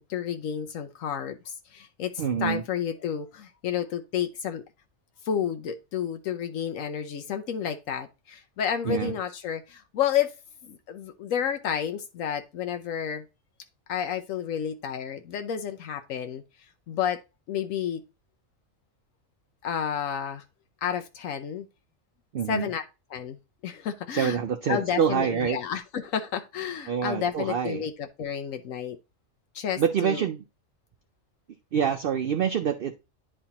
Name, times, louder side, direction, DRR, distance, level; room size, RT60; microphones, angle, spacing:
voice 1, 0.0-4.6 5.2-10.3 10.6-13.2 13.9-16.4 16.9-17.2 17.5-18.0 19.6-20.4 20.8-21.7 22.5-22.8 23.1-23.4 23.6-24.4 24.7-29.0 29.5-30.3, left 8 dB, 80° left, 1.1 m, -31 dB
voice 2, 2.2-2.6 8.8-9.2 22.3-22.7 24.1-25.6 26.9-27.8 29.8-30.4 31.7-32.9, right 8 dB, 60° right, 0.6 m, -26 dB
10.0 x 4.3 x 2.8 m
omnidirectional pair, 1.4 m